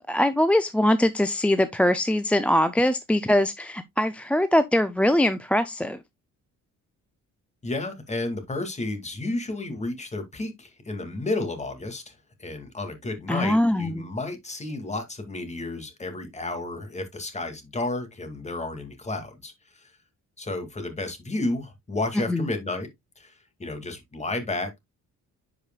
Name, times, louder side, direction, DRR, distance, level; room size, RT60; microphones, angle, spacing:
voice 1, 0.0-6.0 13.3-14.1 22.3-22.4, left 1 dB, 5° left, 0.3 m, -22 dB
voice 2, 7.6-19.9 20.4-22.9 23.2-24.8, left 2 dB, 20° left, 2.1 m, -32 dB
10.5 x 5.0 x 2.2 m
cardioid pair, 135°, 32 cm